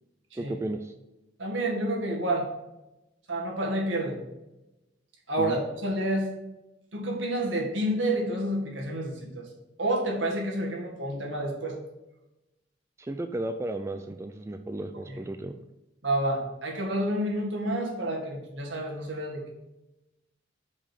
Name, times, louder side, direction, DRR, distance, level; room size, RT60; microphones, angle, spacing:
voice 1, 0.4-0.9 5.4-5.6 13.0-15.6, right 1 dB, 15° right, 7 dB, 0.3 m, -34 dB
voice 2, 1.4-2.4 3.3-4.2 5.3-6.3 6.9-9.4 9.8-11.7 15.1-15.2 16.0-19.5, right 1 dB, 70° right, -1 dB, 2.0 m, -29 dB
5.5 x 5.2 x 6.4 m, 0.98 s
head